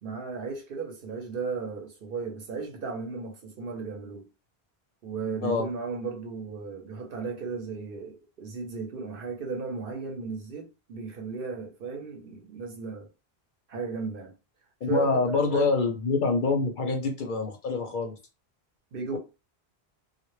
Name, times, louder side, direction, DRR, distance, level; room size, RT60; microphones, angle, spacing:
voice 1, 0.0-4.3 5.0-13.1 13.7-14.3 14.9-15.7 18.9-19.2, right 5 dB, 65° right, 0.8 m, -35 dB
voice 2, 14.8-18.1 19.1-19.2, left 4 dB, 60° left, 0.6 m, -26 dB
2.1 x 2.1 x 3.0 m
omnidirectional pair, 1.1 m